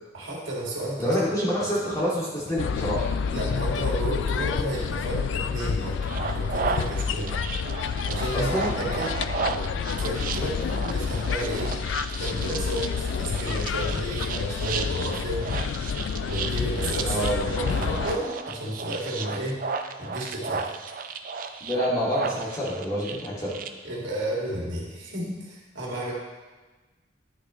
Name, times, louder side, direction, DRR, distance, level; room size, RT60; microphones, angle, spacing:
voice 1, 0.1-1.1 3.3-7.4 8.1-9.2 9.5-10.7 10.9-11.7 12.2-15.5 16.2-17.2 17.5-19.6 20.0-20.7 23.8-26.1, right 1 dB, 85° right, -5 dB, 2.0 m, -32 dB
voice 2, 1.0-3.1 8.3-8.7 17.1-17.9 21.6-23.6, equal, 20° left, -8 dB, 2.2 m, -27 dB
sound 1, 2.6-18.2, left 6 dB, 80° left, 0.3 m, -29 dB
sound 2, 6.0-23.7, right 5 dB, 45° right, 0.4 m, -34 dB
10.5 x 6.2 x 3.1 m, 1.2 s
head